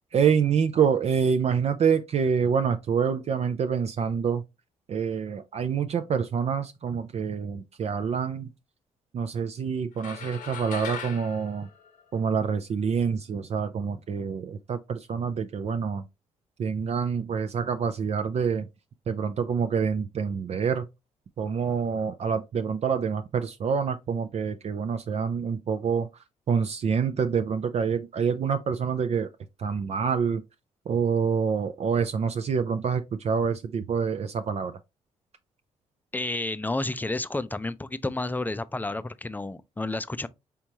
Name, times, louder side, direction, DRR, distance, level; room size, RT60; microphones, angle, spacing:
voice 1, 0.1-4.4 4.9-8.5 9.1-11.7 12.1-16.0 16.6-18.7 19.1-20.9 21.4-26.1 26.5-29.3 29.6-30.4 30.9-34.7, right 6 dB, 50° right, 0.5 m, -26 dB
sound 1, 10.0-12.6, left 7 dB, 75° left, 0.9 m, -39 dB
voice 2, 36.1-40.3, left 2 dB, 15° left, 0.4 m, -31 dB
4.6 x 3.4 x 2.7 m
supercardioid pair, 50°, 14 cm